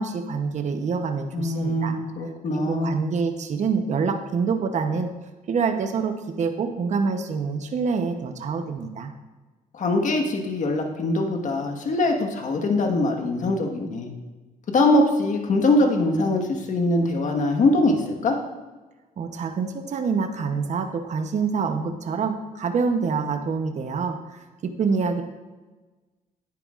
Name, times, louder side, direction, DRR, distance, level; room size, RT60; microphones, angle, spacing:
voice 1, 0.0-2.0 2.5-5.1 5.5-9.1 19.2-25.2, right 5 dB, 50° right, 6 dB, 0.9 m, -26 dB
voice 2, 1.3-2.9 9.7-14.1 14.7-18.3, left 2 dB, 50° left, 3 dB, 1.5 m, -22 dB
10.0 x 9.5 x 2.5 m, 1.2 s
cardioid pair, 95°, 16 cm